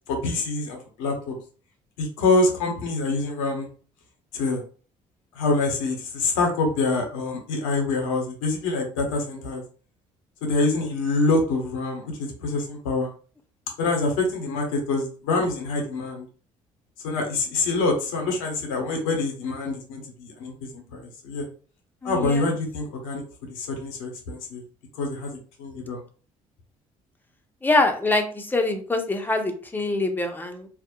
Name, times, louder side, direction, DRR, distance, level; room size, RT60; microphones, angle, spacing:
voice 1, 0.1-1.4 2.0-3.7 4.3-4.6 5.3-9.6 10.4-13.1 13.8-16.2 17.0-21.5 22.0-23.2 23.5-24.6 24.9-26.0, left 3 dB, 85° left, 2 dB, 0.7 m, -26 dB
voice 2, 22.0-22.4 27.6-30.7, left 2 dB, 10° left, 4 dB, 0.6 m, -24 dB
2.2 x 2.0 x 2.9 m, 0.40 s
hypercardioid pair, 55°, 16 cm